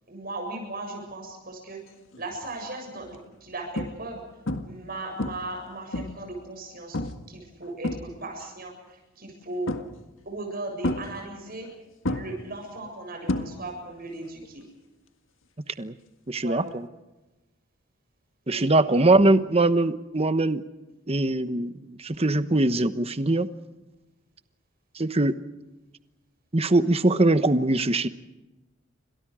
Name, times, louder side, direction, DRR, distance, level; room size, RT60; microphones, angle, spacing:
voice 1, 0.1-1.8 2.1-4.2 4.6-7.0 7.3-9.8 10.3-11.7 12.1-14.6 16.4-16.6 18.5-18.8, right 2 dB, 50° right, 2 dB, 7.4 m, -37 dB
sound 1, 2.1-2.4 3.0-3.2 3.8-4.2 4.5-4.9 5.2-6.3 6.9-7.3 7.6-8.5 9.7-10.2 10.8-11.7 12.0-13.9 14.2-14.6 16.7-16.8, left 1 dB, 75° left, 1.8 m, -31 dB
voice 2, 16.3-16.9 18.5-20.6 21.1-23.5 24.9-25.4 26.5-28.1, right 2 dB, 30° right, 11 dB, 1.1 m, -22 dB
29.0 x 26.0 x 5.0 m, 1.1 s
head